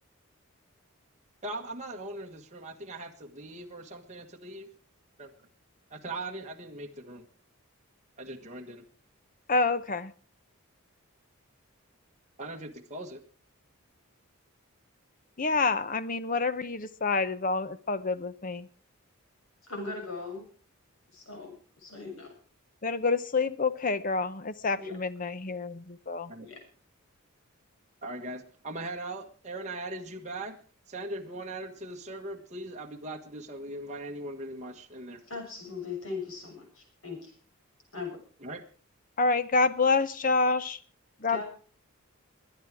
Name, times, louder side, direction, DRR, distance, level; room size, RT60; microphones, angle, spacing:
voice 1, 1.4-4.7 5.2-5.3 5.9-7.2 8.2-8.8 12.4-13.2 26.3-26.5 28.0-30.6 30.9-35.2 38.4-38.6, right 2 dB, 35° right, 2 dB, 1.5 m, -40 dB
voice 2, 9.5-10.1 15.4-18.7 22.8-26.3 39.2-40.8 41.2-41.4, left 4 dB, 40° left, 14 dB, 0.8 m, -27 dB
voice 3, 19.6-20.4 21.1-21.5 21.8-22.3 24.7-24.9 26.4-26.6 35.3-37.3 37.9-38.2 41.3-41.4, left 4 dB, 75° left, 2 dB, 7.0 m, -39 dB
22.5 x 10.0 x 4.8 m, 0.42 s
head